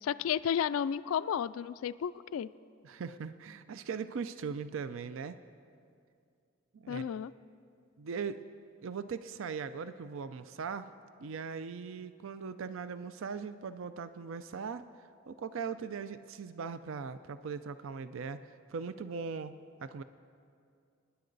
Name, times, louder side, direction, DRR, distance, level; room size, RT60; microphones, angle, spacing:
voice 1, 0.0-2.5 6.9-7.3, left 8 dB, 80° left, 16 dB, 0.3 m, -32 dB
voice 2, 2.8-5.4 6.7-7.1 8.0-8.4 8.8-10.9 11.2-14.8 15.3-20.0, right 5 dB, 70° right, 12 dB, 0.4 m, -39 dB
25.0 x 10.0 x 4.0 m, 2.4 s
head